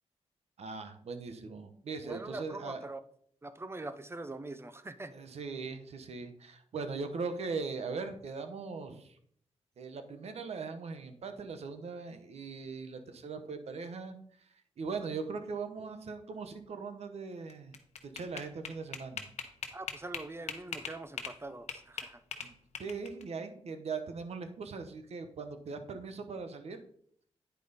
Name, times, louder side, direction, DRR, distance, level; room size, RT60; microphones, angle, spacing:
voice 1, 0.6-2.8 5.1-9.2 9.8-14.2 14.8-17.7 18.1-19.2 22.4-22.5 22.8-26.8, right 4 dB, 70° right, 8 dB, 1.0 m, -40 dB
voice 2, 2.0-3.0 3.4-5.1 19.7-22.2, right 2 dB, 20° right, 12 dB, 0.6 m, -43 dB
sound 1, 17.5-21.4 21.7-23.2, left 7 dB, 80° left, 0.9 m, -40 dB
9.2 x 5.0 x 4.1 m, 0.63 s
cardioid pair, 80°, 11 cm